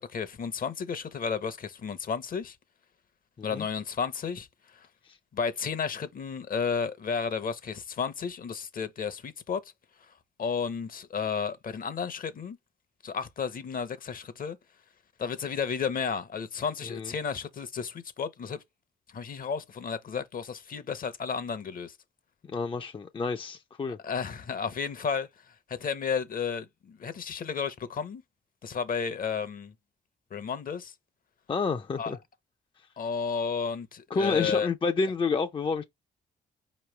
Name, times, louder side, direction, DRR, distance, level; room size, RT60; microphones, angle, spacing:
voice 1, 0.0-2.6 3.4-4.5 4.7-4.9 5.3-9.6 10.4-12.6 13.0-14.6 15.2-18.6 19.1-21.9 24.0-25.3 25.8-28.2 28.6-29.7 30.3-30.9 32.0-32.2 33.0-34.7, left 6 dB, 50° left, 0.8 m, -32 dB
voice 2, 22.5-24.0 31.5-32.2 34.1-35.8, left 4 dB, 30° left, 0.5 m, -29 dB
4.7 x 3.0 x 3.2 m
cardioid pair, 70°, 19 cm